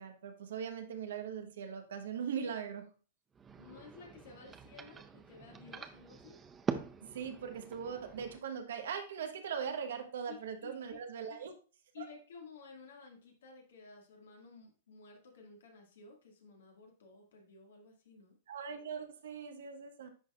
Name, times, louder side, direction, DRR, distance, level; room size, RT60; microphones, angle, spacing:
voice 1, 0.0-2.9 7.0-11.5 12.0-12.1 18.5-20.1, right 7 dB, 75° right, 7 dB, 1.1 m, -40 dB
sound 1, 3.3-8.4, right 6 dB, 20° right, 0.5 m, -44 dB
voice 2, 3.6-6.4 10.3-11.0 11.3-11.4 11.9-18.4, left 5 dB, 80° left, 1 dB, 2.0 m, -54 dB
10.0 x 4.1 x 2.4 m, 0.37 s
hypercardioid pair, 125°, 0 cm